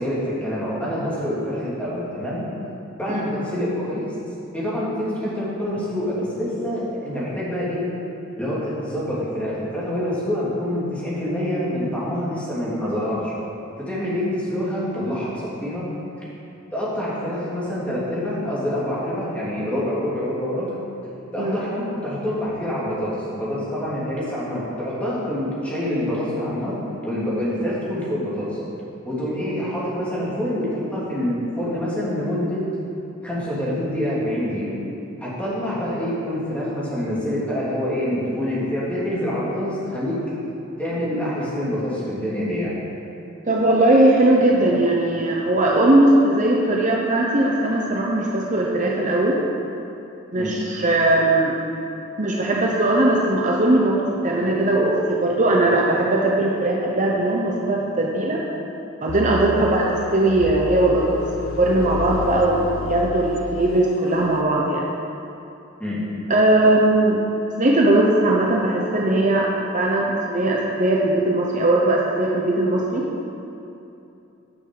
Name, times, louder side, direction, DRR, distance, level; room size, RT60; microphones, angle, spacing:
voice 1, 0.0-2.4 3.0-4.1 4.5-7.9 8.4-13.3 13.9-15.9 16.2-16.3 16.7-20.8 21.3-26.8 27.0-28.6 29.1-32.6 33.2-34.7 35.2-40.2 40.8-42.8 50.4-50.6 59.5-59.7 65.8-66.0, left 1 dB, 5° left, -8 dB, 2.7 m, -26 dB
voice 2, 43.5-49.4 50.3-51.6 52.2-58.4 59.0-64.9 66.3-67.2 67.6-73.1, right 1 dB, 40° right, -2 dB, 0.9 m, -19 dB
sound 1, 59.1-64.1, left 4 dB, 70° left, 0.5 m, -31 dB
9.8 x 6.3 x 6.9 m, 2.9 s
head